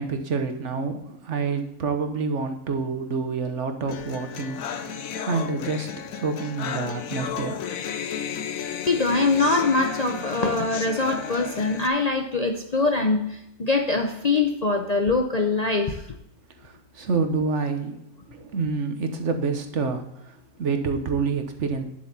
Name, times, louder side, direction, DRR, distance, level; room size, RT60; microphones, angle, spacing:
voice 1, 0.0-4.9 5.2-5.9 6.1-7.6 16.6-18.0 18.3-20.0 20.6-21.9, right 4 dB, 60° right, 6 dB, 1.3 m, -27 dB
sound 1, 3.9-11.9, left 7 dB, 75° left, 1.2 m, -33 dB
voice 2, 8.9-16.0, left 3 dB, 40° left, 4 dB, 0.6 m, -23 dB
9.8 x 7.5 x 4.1 m, 0.83 s
omnidirectional pair, 1.4 m